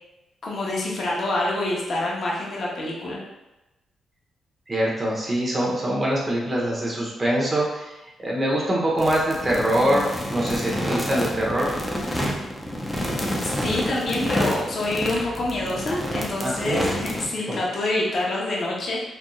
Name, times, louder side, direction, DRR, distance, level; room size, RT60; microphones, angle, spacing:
voice 1, 0.4-3.2 13.4-19.0, left 2 dB, 50° left, -4 dB, 0.9 m, -26 dB
voice 2, 4.7-7.9 8.2-11.7 16.4-16.8, right 1 dB, 20° right, -4 dB, 1.0 m, -24 dB
sound 1, 9.0-17.3, equal, 10° left, 0.6 m, -29 dB
4.4 x 2.6 x 2.4 m, 0.99 s
cardioid pair, 95°, 0 cm